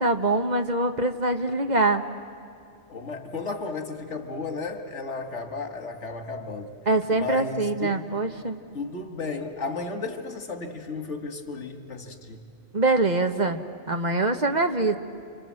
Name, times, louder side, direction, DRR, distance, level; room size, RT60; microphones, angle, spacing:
voice 1, 0.0-2.0 6.9-8.6 12.7-13.6 13.9-15.0, right 2 dB, 40° right, 6 dB, 1.2 m, -24 dB
voice 2, 2.9-6.7 7.1-8.1 8.7-12.4, left 3 dB, 85° left, 6 dB, 2.2 m, -34 dB
29.0 x 25.5 x 7.6 m, 2.5 s
omnidirectional pair, 1.2 m